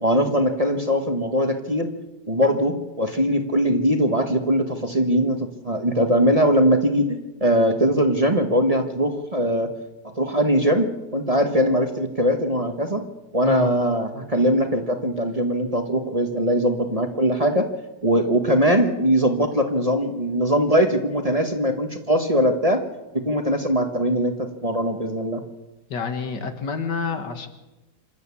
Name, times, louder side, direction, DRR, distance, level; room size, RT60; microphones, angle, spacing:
voice 1, 0.0-1.9 2.3-9.7 10.2-13.0 13.3-17.7 18.0-22.8 23.1-25.4, equal, 20° right, 5 dB, 1.4 m, -21 dB
voice 2, 25.9-27.5, left 5 dB, 80° left, 7 dB, 2.4 m, -28 dB
26.0 x 12.0 x 8.5 m, 1.0 s
omnidirectional pair, 1.8 m